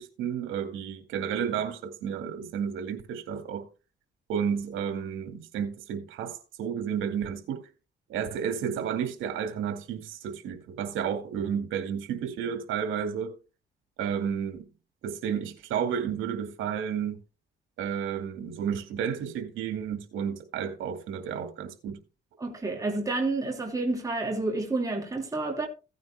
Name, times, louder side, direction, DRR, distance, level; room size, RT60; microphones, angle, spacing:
voice 1, 0.0-3.6 4.3-7.6 8.1-13.3 14.0-14.7 15.0-17.2 17.8-22.0, right 8 dB, 85° right, 2.3 m, -32 dB
voice 2, 22.4-25.7, right 2 dB, 15° right, 3.1 m, -29 dB
16.5 x 9.6 x 2.3 m
cardioid pair, 90°, 20 cm